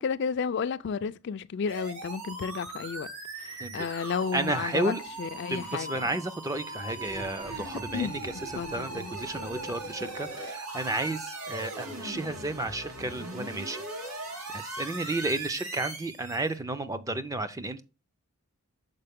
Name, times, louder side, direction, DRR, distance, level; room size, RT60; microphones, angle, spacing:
voice 1, 0.0-3.1 3.4-6.2 7.9-8.2 8.6-9.1, left 6 dB, 55° left, 0.3 m, -32 dB
sound 1, 1.7-16.6, right 2 dB, 90° right, 2.2 m, -39 dB
voice 2, 4.3-5.0 5.5-13.8 14.5-17.8, right 2 dB, 15° right, 0.4 m, -32 dB
sound 2, 7.1-7.8, right 2 dB, 40° right, 1.6 m, -52 dB
6.7 x 4.5 x 3.5 m
head